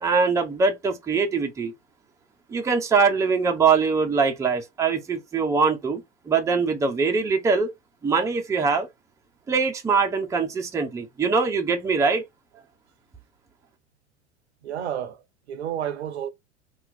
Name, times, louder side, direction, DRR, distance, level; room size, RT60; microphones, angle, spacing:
voice 1, 0.0-1.7 2.5-7.7 8.0-8.9 9.5-12.2, right 5 dB, 10° right, 0.5 m, -22 dB
voice 2, 14.6-16.3, right 10 dB, 70° right, 0.6 m, -31 dB
2.8 x 2.4 x 3.5 m
figure-of-eight pair, 85°, 35 cm